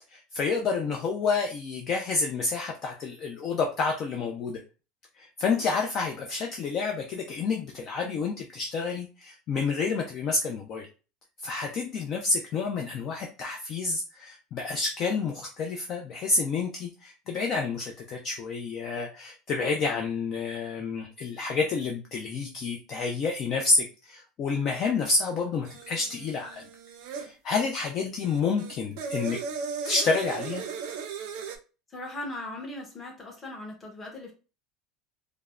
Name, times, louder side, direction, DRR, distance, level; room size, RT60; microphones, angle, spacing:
voice 1, 0.1-4.6 5.1-10.9 11.4-26.6 27.1-29.4 29.8-30.6, left 4 dB, 35° left, 2 dB, 0.4 m, -29 dB
sound 1, 25.7-27.3 28.2-31.6, right 5 dB, 65° right, 0.5 m, -36 dB
voice 2, 31.9-34.3, left 1 dB, 20° left, 0 dB, 0.8 m, -38 dB
3.4 x 2.0 x 2.3 m, 0.33 s
cardioid pair, 155°, 0 cm